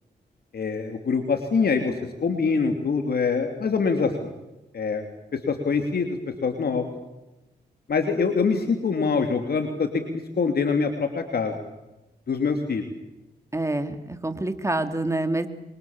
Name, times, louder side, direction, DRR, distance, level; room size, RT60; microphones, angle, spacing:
voice 1, 0.5-1.9 2.2-4.3 4.7-5.0 5.3-6.8 7.9-11.5 12.3-12.8, left 5 dB, 65° left, 5 dB, 2.7 m, -24 dB
voice 2, 13.5-15.5, right 2 dB, 15° right, 8 dB, 2.9 m, -27 dB
28.0 x 23.5 x 7.2 m, 0.99 s
cardioid pair, 65°, 18 cm